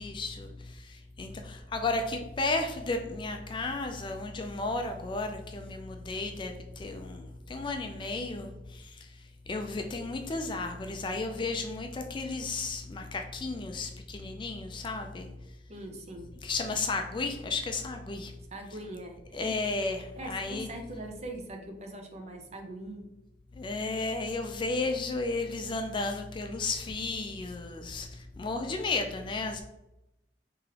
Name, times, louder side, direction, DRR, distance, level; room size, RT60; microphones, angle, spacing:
voice 1, 0.0-15.4 16.4-18.4 19.3-20.7 23.5-29.6, left 3 dB, 25° left, 5 dB, 0.3 m, -33 dB
voice 2, 15.7-16.3 18.5-19.5 20.2-23.1, right 1 dB, 40° right, 3 dB, 0.6 m, -42 dB
3.6 x 2.9 x 3.2 m, 0.92 s
head